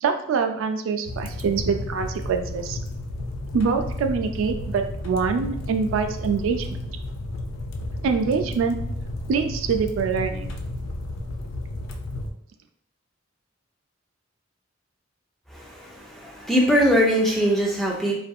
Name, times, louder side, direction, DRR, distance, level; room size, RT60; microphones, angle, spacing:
voice 1, 0.0-2.8 3.5-6.8 8.0-8.8 9.3-10.5, right 5 dB, 85° right, 7 dB, 0.3 m, -24 dB
sound 1, 1.0-12.3, left 1 dB, 85° left, 0.4 m, -32 dB
voice 2, 15.5-18.1, equal, ahead, -3 dB, 0.4 m, -21 dB
2.6 x 2.5 x 2.3 m, 0.70 s
head